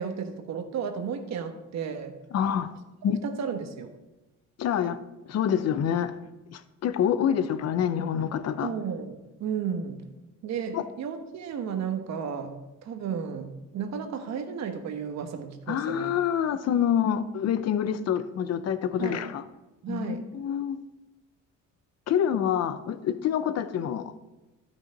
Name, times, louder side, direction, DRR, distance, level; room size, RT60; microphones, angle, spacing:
voice 1, 0.0-2.2 3.0-3.9 8.6-10.0 10.4-16.2 19.0-19.2 19.8-20.3, right 6 dB, 60° right, 7 dB, 1.2 m, -33 dB
voice 2, 2.3-2.7 3.0-3.2 4.6-5.0 5.3-6.1 6.5-8.7 10.7-10.8 15.7-19.4 19.9-20.1 20.3-20.8 22.1-24.1, left 9 dB, 50° left, 12 dB, 0.8 m, -26 dB
12.5 x 5.9 x 5.2 m, 1.0 s
cardioid pair, 115°, 32 cm